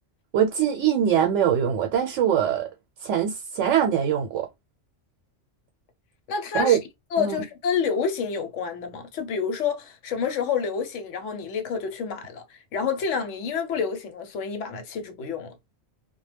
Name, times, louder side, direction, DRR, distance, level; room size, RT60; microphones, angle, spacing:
voice 1, 0.3-2.7 3.0-4.5 6.5-6.8 7.2-7.4, right 9 dB, 85° right, 0.9 m, -22 dB
voice 2, 6.3-6.8 7.1-15.5, left 6 dB, 85° left, 1.0 m, -28 dB
2.2 x 2.1 x 3.2 m
omnidirectional pair, 1.2 m